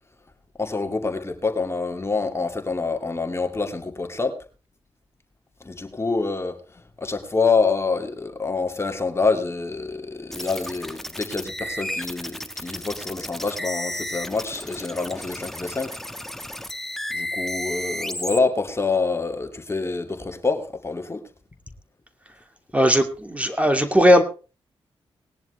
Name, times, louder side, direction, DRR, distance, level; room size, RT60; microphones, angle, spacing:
voice 1, 0.6-4.4 5.6-16.0 17.1-21.2, left 4 dB, 25° left, 2.4 m, -26 dB
sound 1, 10.3-18.4, left 1 dB, 5° left, 1.4 m, -33 dB
voice 2, 22.7-24.2, equal, 15° right, 2.7 m, -17 dB
20.0 x 10.5 x 3.3 m
cardioid pair, 65°, 10 cm